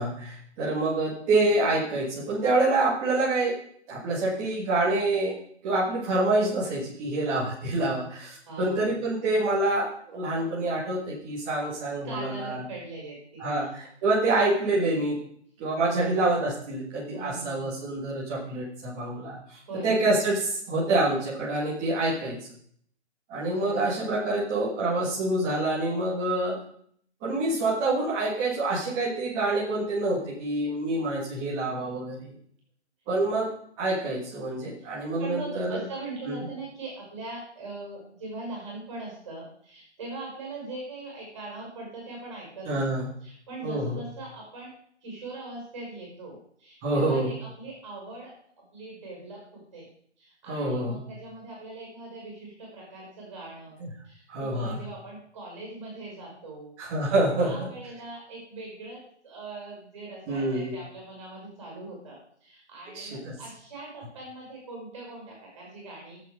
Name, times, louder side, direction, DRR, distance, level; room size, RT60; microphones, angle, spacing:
voice 1, 0.0-3.5 3.9-5.3 5.6-12.6 13.4-15.2 15.6-19.4 19.8-22.4 23.3-26.6 27.2-32.3 33.1-33.5 33.8-35.8 36.2-36.5 42.6-43.1 43.6-44.0 46.8-47.3 50.4-51.0 53.8-53.9 54.3-54.8 56.8-57.5 60.3-60.7 62.9-63.3, right 2 dB, 5° right, -6 dB, 1.4 m, -27 dB
voice 2, 8.4-9.0 12.0-13.7 15.9-16.3 17.1-17.8 19.7-20.1 23.6-24.0 34.8-34.9 35.2-44.7 45.0-49.9 50.2-56.7 57.0-57.1 57.4-66.2, right 2 dB, 25° right, -2 dB, 5.5 m, -41 dB
14.5 x 7.6 x 4.8 m, 0.63 s
hypercardioid pair, 175°, 35 cm